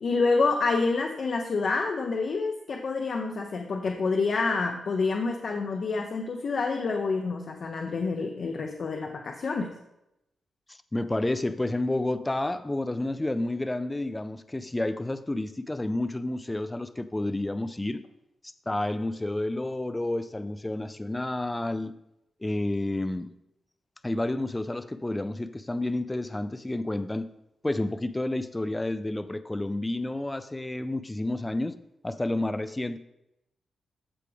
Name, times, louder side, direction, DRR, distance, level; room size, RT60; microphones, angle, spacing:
voice 1, 0.0-9.7, left 4 dB, 45° left, 0.8 m, -28 dB
voice 2, 10.7-18.0 18.7-22.0 22.4-23.3 24.0-27.3 27.6-31.8 32.0-33.0, left 1 dB, 10° left, 0.3 m, -30 dB
14.5 x 4.9 x 3.5 m
wide cardioid pair, 165°, 0 cm